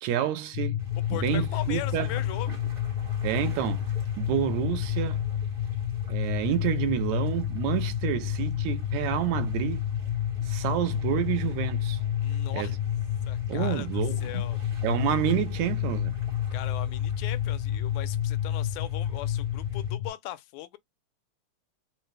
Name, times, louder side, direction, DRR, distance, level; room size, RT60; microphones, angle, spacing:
voice 1, 0.0-0.8 1.1-2.1 3.2-5.2 6.1-9.8 10.4-12.0 12.5-12.7 13.5-14.2 14.8-16.1, right 10 dB, 80° right, 1.9 m, -29 dB
sound 1, 0.5-20.1, left 10 dB, 70° left, 1.5 m, -30 dB
sound 2, 0.8-19.9, equal, 45° right, 0.6 m, -45 dB
voice 2, 1.1-2.6 12.2-12.7 13.3-14.6 16.5-20.8, left 15 dB, 85° left, 2.0 m, -39 dB
4.8 x 2.0 x 3.2 m
omnidirectional pair, 3.4 m